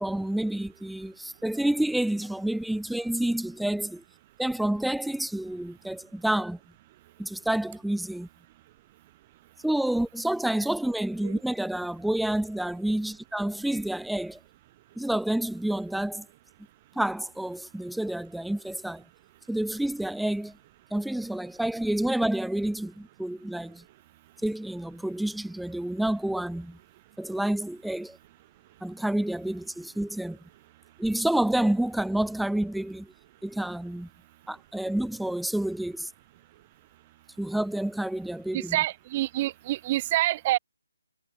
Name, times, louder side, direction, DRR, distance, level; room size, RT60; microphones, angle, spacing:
voice 1, 0.0-4.0 4.4-6.6 7.2-8.3 9.6-14.4 15.0-16.3 17.0-19.0 19.5-20.5 20.9-23.8 24.4-26.8 27.2-28.2 28.8-30.4 31.0-33.1 33.4-34.1 34.5-36.1 37.4-38.8, right 1 dB, ahead, 0.7 m, -29 dB
voice 2, 38.5-40.6, right 16 dB, 30° right, 4.4 m, -27 dB
figure-of-eight pair, 145°, 0 cm